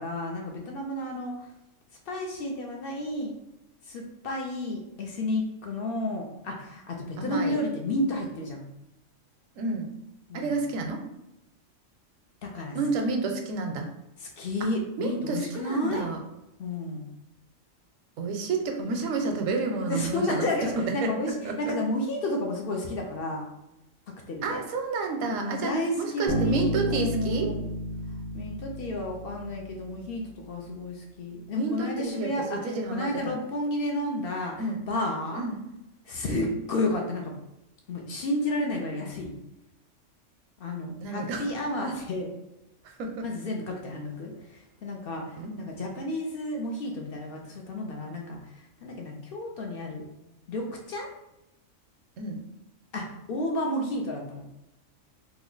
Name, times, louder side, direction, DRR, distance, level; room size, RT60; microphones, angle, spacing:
voice 1, 0.0-1.4 2.1-3.3 3.9-8.7 10.3-10.5 12.4-12.8 14.2-16.1 16.6-17.1 19.9-21.3 21.6-23.5 24.3-24.6 25.3-27.6 28.3-32.6 32.9-34.6 34.9-35.4 36.1-37.4 37.9-39.4 40.6-42.3 43.2-44.3 44.8-48.4 48.8-50.1 50.5-51.1 52.9-54.4, left 1 dB, 60° left, 1 dB, 0.6 m, -31 dB
voice 2, 7.2-7.6 9.6-9.9 10.3-11.0 12.7-13.9 15.0-16.2 18.2-20.5 20.8-21.1 21.4-21.7 24.4-27.5 31.5-33.4 34.6-34.8 35.3-35.6 36.3-36.5 41.0-41.5 42.8-43.2 45.4-45.6 52.2-52.4, right 3 dB, 85° right, 3 dB, 1.0 m, -30 dB
Bass guitar, 26.3-30.0, equal, 25° left, 0.7 m, -32 dB
3.0 x 2.2 x 3.8 m, 0.90 s
omnidirectional pair, 1.4 m